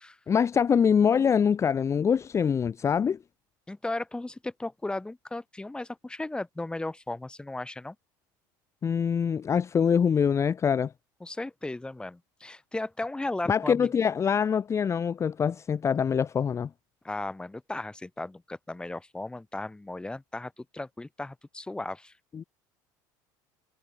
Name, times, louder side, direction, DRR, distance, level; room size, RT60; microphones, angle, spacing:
voice 1, 0.3-3.2 8.8-10.9 13.5-16.7 22.3-22.4, left 7 dB, 30° left, 0.6 m, -24 dB
voice 2, 3.7-7.9 11.2-13.9 17.0-22.1, left 2 dB, 10° left, 1.1 m, -36 dB
supercardioid pair, 95°, 10 cm